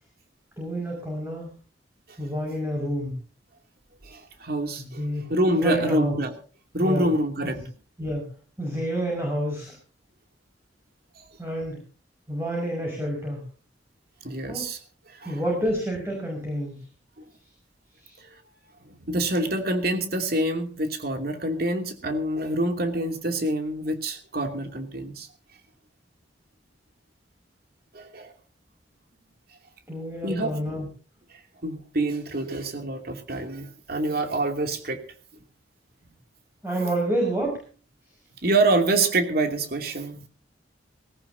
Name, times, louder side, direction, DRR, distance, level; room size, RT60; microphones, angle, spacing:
voice 1, 0.6-1.5 2.2-3.1 4.8-5.3 5.6-6.2 6.8-7.1 8.0-8.3 8.6-9.8 11.4-11.8 12.3-13.5 14.5-14.7 15.2-16.8 18.0-18.2 29.9-30.9 36.6-37.6, right 1 dB, 15° right, 0 dB, 5.7 m, -29 dB
voice 2, 4.0-5.0 5.3-6.3 6.7-7.6 14.2-14.8 15.2-15.4 18.8-25.3 27.9-28.3 30.2-30.6 31.6-35.0 38.4-40.2, right 2 dB, 55° right, 5 dB, 2.8 m, -26 dB
20.0 x 18.5 x 2.8 m, 0.37 s
head